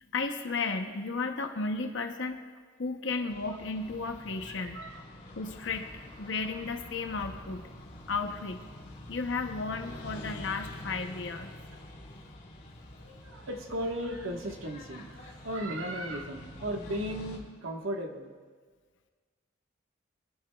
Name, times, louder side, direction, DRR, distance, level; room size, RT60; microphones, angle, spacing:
voice 1, 0.1-2.4 2.8-4.8 5.3-7.7 8.1-8.6 9.1-11.5, left 4 dB, 65° left, 6 dB, 0.7 m, -34 dB
voice 2, 3.1-3.6 4.5-5.0 13.0-18.3, equal, 85° right, 3 dB, 1.3 m, -36 dB
sound 1, 3.3-17.4, left 1 dB, 40° left, 3.3 m, -46 dB
24.0 x 11.0 x 2.3 m, 1.5 s
head